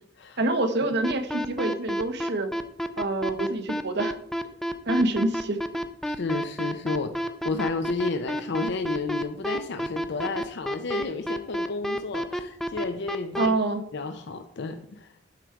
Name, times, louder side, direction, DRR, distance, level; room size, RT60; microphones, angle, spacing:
voice 1, 0.4-2.5 3.0-4.1 4.8-5.6 13.4-13.8, right 2 dB, 60° right, 7 dB, 1.0 m, -26 dB
sound 1, 1.0-13.5, equal, ahead, 0.4 m, -29 dB
voice 2, 6.1-13.5 13.9-15.1, left 3 dB, 60° left, 8 dB, 0.6 m, -32 dB
11.5 x 4.8 x 4.7 m, 0.71 s
head